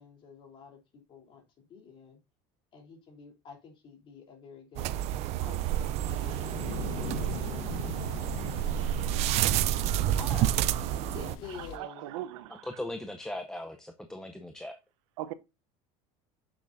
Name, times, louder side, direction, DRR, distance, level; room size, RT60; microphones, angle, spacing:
voice 1, 0.0-2.2 2.7-5.0 5.3-8.4 10.2-10.6 11.1-12.0, left 5 dB, 35° left, 3.1 m, -48 dB
sound 1, 4.8-11.4, right 13 dB, 45° right, 0.5 m, -29 dB
sound 2, 6.0-11.8, left 8 dB, 75° left, 1.2 m, -41 dB
voice 2, 11.5-12.7 15.2-15.3, right 13 dB, 90° right, 0.9 m, -39 dB
voice 3, 12.5-14.8, left 1 dB, 5° left, 0.5 m, -39 dB
7.6 x 7.4 x 2.5 m
cardioid pair, 165°, 16 cm